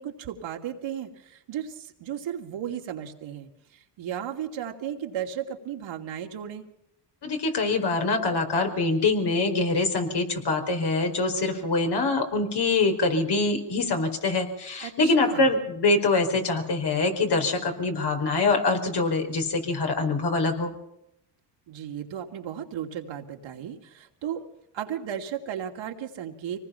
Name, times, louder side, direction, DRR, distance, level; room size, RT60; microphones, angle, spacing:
voice 1, 0.0-3.5 4.0-6.7 14.8-15.5 21.7-24.5 24.7-26.7, right 9 dB, 65° right, 3 dB, 2.8 m, -35 dB
voice 2, 7.2-20.7, left 3 dB, 50° left, 3 dB, 4.8 m, -24 dB
25.0 x 19.5 x 5.8 m, 0.81 s
supercardioid pair, 65°, 49 cm